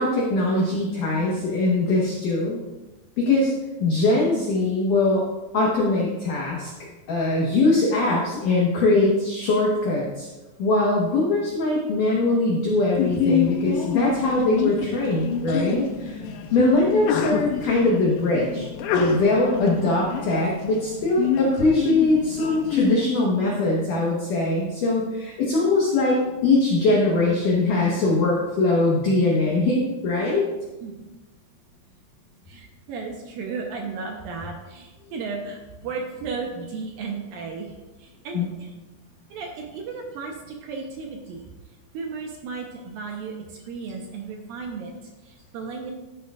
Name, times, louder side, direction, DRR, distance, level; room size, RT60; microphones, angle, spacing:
voice 1, 0.0-2.6 3.2-3.5 3.8-5.2 5.5-6.7 7.1-10.3 10.6-16.2 16.5-18.7 18.9-30.4 35.8-36.1 38.3-38.5, left 2 dB, 65° left, -4 dB, 2.2 m, -22 dB
Sneeze, 13.0-22.9, left 6 dB, 80° left, 2.7 m, -27 dB
voice 2, 30.8-31.1 32.5-37.7 38.0-38.7 39.3-45.9, right 4 dB, 75° right, 1 dB, 2.2 m, -35 dB
12.0 x 9.0 x 2.4 m, 1.1 s
omnidirectional pair, 5.1 m